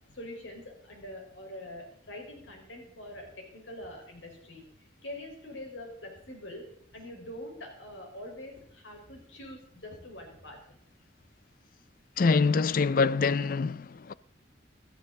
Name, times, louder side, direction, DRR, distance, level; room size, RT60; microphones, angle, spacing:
voice 1, 0.1-4.6 5.0-6.7 6.9-10.8, left 1 dB, 80° left, 4.3 m, -44 dB
voice 2, 12.2-14.1, left 4 dB, 45° left, 0.4 m, -25 dB
16.0 x 13.0 x 3.8 m
head